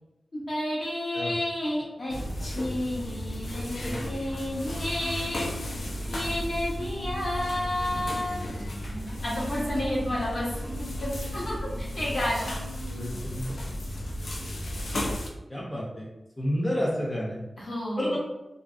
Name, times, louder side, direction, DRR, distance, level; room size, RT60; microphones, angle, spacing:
voice 1, 0.3-2.1 2.4-5.5 6.1-8.4 9.2-10.5 11.0-12.5 17.6-18.2, left 1 dB, 65° left, -7 dB, 1.0 m, -31 dB
sound 1, 2.1-15.3, equal, 90° left, 0.4 m, -34 dB
Marimba xylophone, 3.9-4.7 5.0-6.4 6.8-7.5 7.9-12.0 12.4-13.1 13.5-13.7, equal, 35° right, 0.5 m, -44 dB
voice 2, 12.9-13.5 15.5-16.1 16.4-17.4 18.0-18.2, equal, 20° left, -5 dB, 0.5 m, -30 dB
2.5 x 2.3 x 2.4 m, 1.0 s
wide cardioid pair, 105°, 0 cm